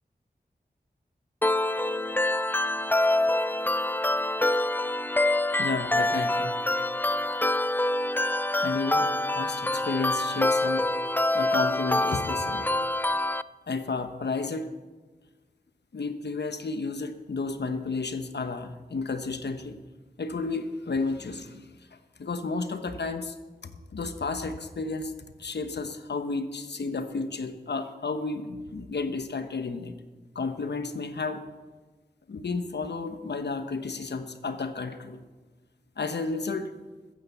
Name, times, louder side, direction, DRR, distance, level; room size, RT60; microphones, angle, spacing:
sound 1, 1.4-13.4, left 1 dB, 10° left, 0.4 m, -26 dB
voice 1, 5.6-6.5 8.6-10.9 11.3-12.7 13.7-14.7 15.9-19.8 20.2-21.7 22.2-23.3 23.9-25.1 25.4-29.9 30.3-31.4 32.3-35.2 36.0-36.7, left 4 dB, 90° left, 9 dB, 1.1 m, -32 dB
14.5 x 10.5 x 7.0 m, 1.3 s
wide cardioid pair, 65°, 17 cm